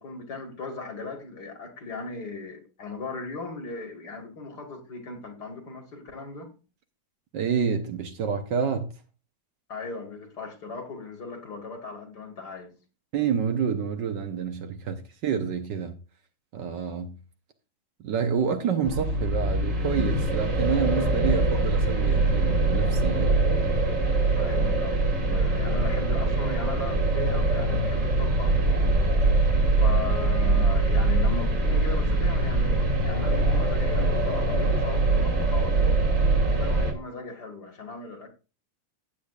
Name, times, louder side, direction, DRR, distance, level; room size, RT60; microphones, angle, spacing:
voice 1, 0.0-6.5 9.7-12.7 24.4-28.8 29.8-36.0 36.6-38.3, left 3 dB, 50° left, 2.5 m, -38 dB
voice 2, 7.3-8.9 13.1-16.0 16.5-17.2 18.0-23.4, right 6 dB, 65° right, 1.5 m, -28 dB
sound 1, 18.8-36.9, right 2 dB, 40° right, 2.3 m, -23 dB
15.0 x 8.6 x 2.4 m
omnidirectional pair, 2.3 m